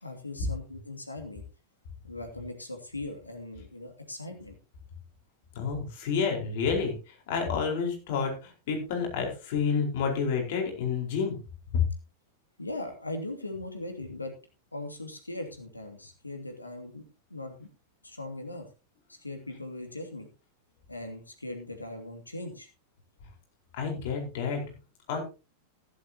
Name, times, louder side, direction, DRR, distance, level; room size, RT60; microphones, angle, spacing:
voice 1, 0.0-1.4 2.0-4.6 12.6-14.3 14.7-17.0 17.3-17.7 18.0-18.7 19.1-20.3 20.9-22.7, left 2 dB, 85° left, 4 dB, 2.5 m, -39 dB
voice 2, 5.5-11.4 11.7-11.8 23.7-24.6 25.1-25.2, left 5 dB, 50° left, 2 dB, 4.8 m, -29 dB
15.5 x 11.0 x 3.0 m, 0.32 s
figure-of-eight pair, 90°, 0 cm